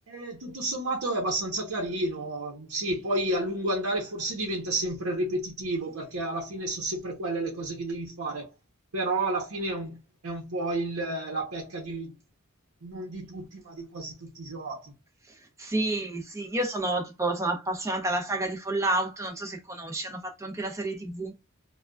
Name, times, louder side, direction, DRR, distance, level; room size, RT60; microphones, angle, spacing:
voice 1, 0.1-8.5 8.9-12.1 12.8-14.9, right 2 dB, 70° right, 0.9 m, -31 dB
voice 2, 15.6-21.3, right 2 dB, 15° right, 0.8 m, -30 dB
3.8 x 2.3 x 2.3 m
head